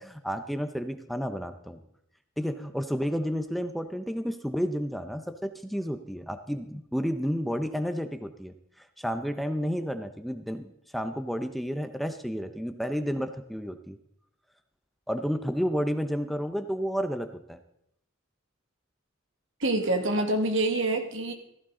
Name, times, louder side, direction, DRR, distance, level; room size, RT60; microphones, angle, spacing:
voice 1, 0.0-1.8 2.4-8.5 9.0-14.0 15.1-17.6, equal, ahead, 8 dB, 0.7 m, -31 dB
voice 2, 19.6-21.3, right 2 dB, 70° right, 5 dB, 2.0 m, -26 dB
15.0 x 15.0 x 3.8 m, 0.75 s
head